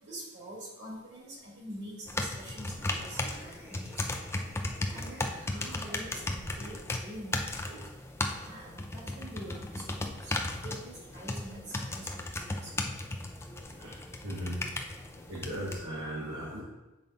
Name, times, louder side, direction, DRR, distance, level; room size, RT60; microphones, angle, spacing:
voice 1, 0.1-3.9 4.9-6.2 6.6-7.4 7.6-7.8 8.4-12.2 12.5-12.7, right 1 dB, 50° right, -4 dB, 2.3 m, -45 dB
sound 1, 2.1-15.8, left 2 dB, 10° left, 0.4 m, -36 dB
sound 2, 2.7-6.8, equal, 10° right, 1.2 m, -51 dB
voice 2, 14.2-14.6 15.3-16.6, equal, 65° right, -6 dB, 1.7 m, -37 dB
7.0 x 5.4 x 3.9 m, 1.0 s
head